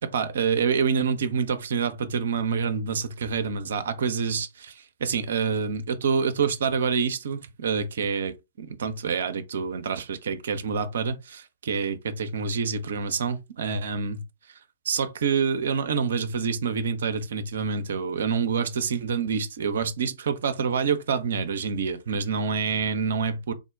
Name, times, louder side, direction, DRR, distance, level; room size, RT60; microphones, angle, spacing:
voice 1, 0.0-14.2 14.8-23.5, right 6 dB, 60° right, 0.6 m, -27 dB
3.7 x 2.1 x 3.5 m
figure-of-eight pair, 115°, 0 cm